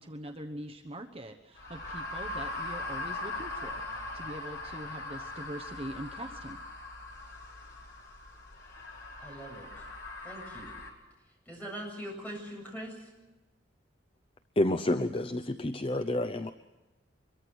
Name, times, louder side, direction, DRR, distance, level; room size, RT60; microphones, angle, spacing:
voice 1, 0.0-6.6, right 1 dB, 30° right, 4 dB, 1.0 m, -43 dB
sound 1, 1.5-10.9, left 2 dB, 65° left, 5.1 m, -40 dB
voice 2, 9.2-9.8 10.2-10.8 11.5-13.1, equal, 10° left, 0 dB, 7.9 m, -42 dB
voice 3, 14.6-16.5, left 1 dB, 30° left, 8 dB, 0.7 m, -29 dB
25.0 x 22.5 x 6.4 m, 1.1 s
head